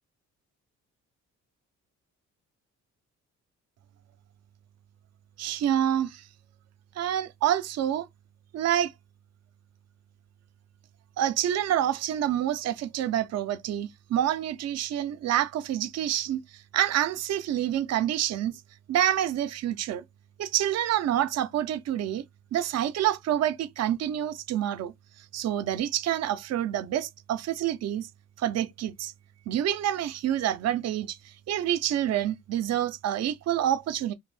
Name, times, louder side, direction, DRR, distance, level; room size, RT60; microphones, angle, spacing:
voice 1, 5.4-6.2 7.0-8.1 8.5-8.9 11.2-18.6 18.9-20.0 20.4-22.2 22.5-24.9 25.3-28.1 28.4-29.1 29.5-34.1, right 11 dB, 60° right, 0.5 m, -27 dB
2.5 x 2.2 x 3.2 m
cardioid pair, 90°, 30 cm